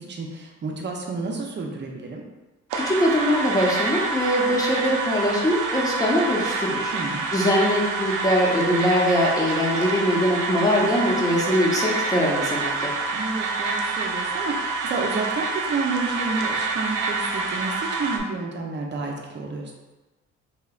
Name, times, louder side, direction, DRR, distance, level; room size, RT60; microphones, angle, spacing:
voice 1, 0.0-2.2 6.9-7.2 13.1-19.7, right 3 dB, 35° right, 1 dB, 0.6 m, -30 dB
voice 2, 2.7-6.9 7.3-12.9, equal, 10° left, -4 dB, 0.8 m, -22 dB
sound 1, 2.7-18.2, right 3 dB, 85° right, 0.5 m, -27 dB
3.1 x 2.9 x 2.4 m, 1.1 s
cardioid pair, 90°, 30 cm